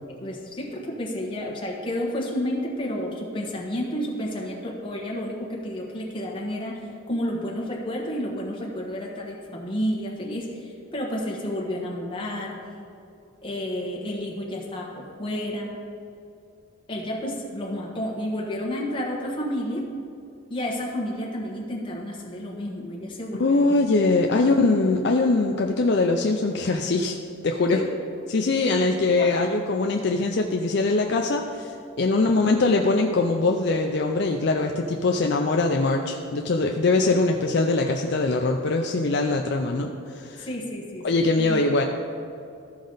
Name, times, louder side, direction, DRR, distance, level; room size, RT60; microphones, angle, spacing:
voice 1, 0.1-12.6 13.4-15.8 16.9-19.9 20.5-23.8 24.3-24.4 27.7-27.9 29.2-29.3 32.1-32.3 40.5-41.7, equal, 25° left, -2 dB, 1.3 m, -31 dB
voice 2, 23.4-27.2 27.4-27.8 28.3-40.5 41.0-41.8, left 3 dB, 50° left, 3 dB, 0.4 m, -22 dB
14.0 x 5.1 x 3.9 m, 2.6 s
head